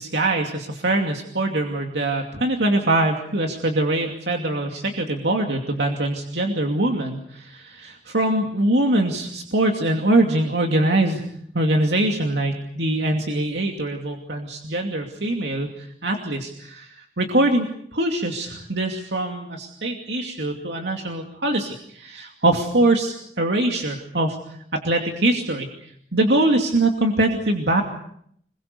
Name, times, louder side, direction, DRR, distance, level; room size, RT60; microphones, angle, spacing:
voice 1, 0.0-11.2 11.5-17.7 17.9-24.4 24.7-27.8, right 1 dB, 85° right, 2 dB, 2.6 m, -23 dB
26.0 x 22.5 x 6.8 m, 0.70 s
head